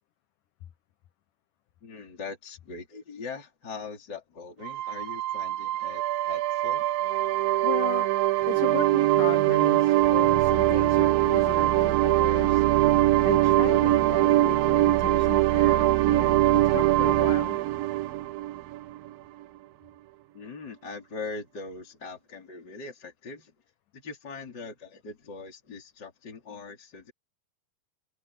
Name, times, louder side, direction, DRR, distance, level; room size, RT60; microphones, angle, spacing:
voice 1, 1.8-6.9 20.3-23.5 23.9-27.1, left 4 dB, 25° left, 4.6 m, -41 dB
sound 1, 4.6-19.1, right 15 dB, 80° right, 2.1 m, -22 dB
voice 2, 7.3-8.1 8.5-12.7 13.2-17.6, left 12 dB, 65° left, 2.2 m, -36 dB
omnidirectional pair, 4.6 m